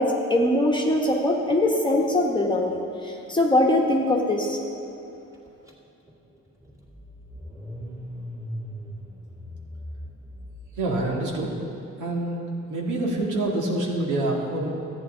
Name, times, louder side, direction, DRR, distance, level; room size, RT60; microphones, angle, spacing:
voice 1, 0.0-4.6, left 1 dB, 15° left, -1 dB, 1.2 m, -22 dB
Car / Engine starting, 5.7-5.8 6.1-11.3, equal, 10° right, 2.4 m, -39 dB
voice 2, 10.8-11.5 12.0-12.4 12.7-14.7, right 2 dB, 80° right, -2 dB, 2.0 m, -26 dB
14.0 x 9.5 x 3.9 m, 2.9 s
cardioid pair, 90°, 30 cm